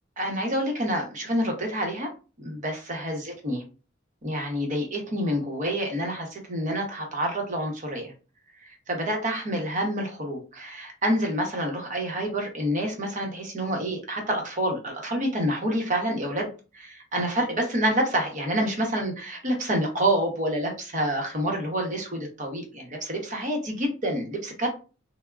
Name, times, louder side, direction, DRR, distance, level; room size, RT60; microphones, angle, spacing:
voice 1, 0.2-2.1 2.4-3.6 4.2-8.1 8.7-24.7, equal, 40° right, 2 dB, 0.8 m, -28 dB
3.4 x 2.0 x 2.3 m, 0.33 s
head